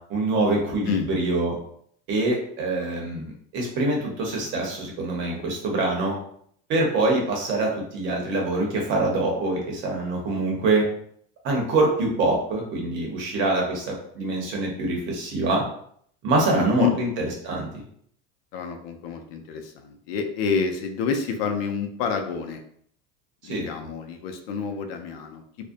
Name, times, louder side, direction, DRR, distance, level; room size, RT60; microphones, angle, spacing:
voice 1, 0.1-1.5 2.1-6.2 6.7-10.8 11.4-15.6 16.2-17.8 23.4-23.7, right 2 dB, 40° right, -1 dB, 0.8 m, -25 dB
voice 2, 16.5-17.0 18.5-22.6 23.4-25.6, left 6 dB, 75° left, 5 dB, 0.5 m, -28 dB
2.5 x 2.1 x 2.5 m, 0.64 s
supercardioid pair, 150°, 29 cm